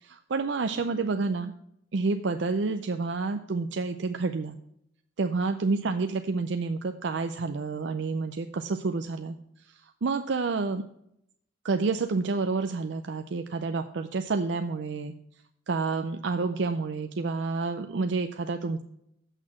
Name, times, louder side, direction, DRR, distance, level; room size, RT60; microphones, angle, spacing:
voice 1, 0.0-1.5 1.9-4.6 5.2-9.4 10.0-10.9 11.6-15.1 15.7-18.8, right 4 dB, 65° right, 7 dB, 0.5 m, -29 dB
7.9 x 6.4 x 5.9 m, 0.75 s
head